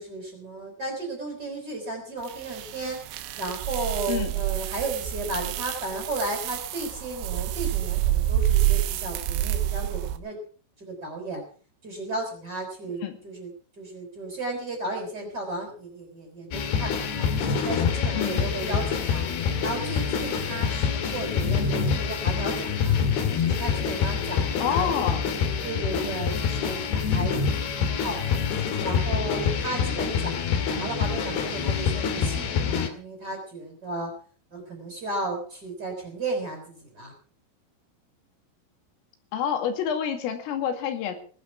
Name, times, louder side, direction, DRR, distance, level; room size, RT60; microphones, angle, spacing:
voice 1, 0.0-3.0 3.4-10.4 10.8-11.4 11.8-17.3 17.6-19.3 19.6-23.0 23.4-25.0 25.4-28.4 28.8-34.1 34.5-37.1, right 2 dB, 20° right, 1 dB, 5.1 m, -34 dB
sound 1, 2.3-10.2, right 13 dB, 85° right, 4.0 m, -28 dB
sound 2, 16.5-32.9, left 6 dB, 60° left, 3.7 m, -26 dB
voice 2, 24.6-25.2 39.3-41.2, left 8 dB, 80° left, 6 dB, 4.8 m, -27 dB
19.5 x 12.0 x 5.9 m, 0.42 s
omnidirectional pair, 5.8 m